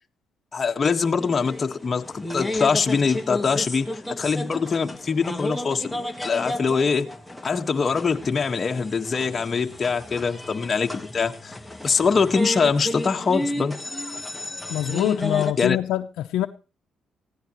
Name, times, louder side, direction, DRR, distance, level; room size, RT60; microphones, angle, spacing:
voice 1, 0.5-7.1 7.4-11.5 11.8-13.8 15.6-15.8, left 5 dB, 35° left, 1.6 m, -23 dB
sound 1, 1.2-15.5, left 1 dB, 5° left, 1.7 m, -33 dB
voice 2, 14.7-16.5, left 13 dB, 90° left, 0.8 m, -24 dB
19.5 x 16.0 x 3.2 m
cardioid pair, 90°, 0 cm